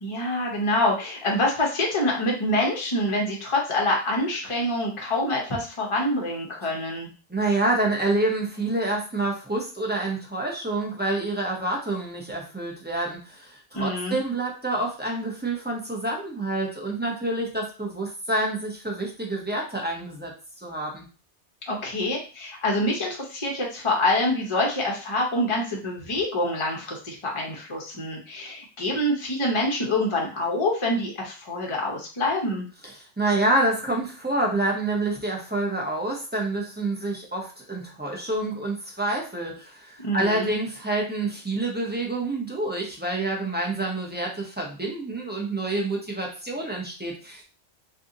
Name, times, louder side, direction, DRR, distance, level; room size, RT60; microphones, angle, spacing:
voice 1, 0.0-7.1 13.7-14.2 21.7-32.7 40.0-40.5, left 1 dB, 30° left, -1 dB, 0.8 m, -26 dB
voice 2, 7.3-20.3 20.6-21.0 33.0-47.4, right 2 dB, 10° right, -2 dB, 0.6 m, -27 dB
2.7 x 2.5 x 3.7 m, 0.36 s
omnidirectional pair, 1.2 m